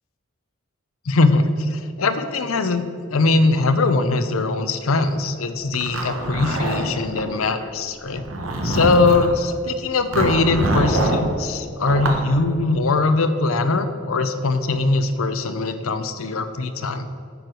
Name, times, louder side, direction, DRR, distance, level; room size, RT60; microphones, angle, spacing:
voice 1, 1.1-2.9 3.1-8.2 8.6-17.1, left 3 dB, 85° left, 10 dB, 0.6 m, -21 dB
Zipper (clothing), 5.7-7.3 8.1-9.3 10.1-11.2 11.8-12.2, right 1 dB, 85° right, 1.1 m, -24 dB
9.9 x 4.6 x 6.2 m, 2.3 s
head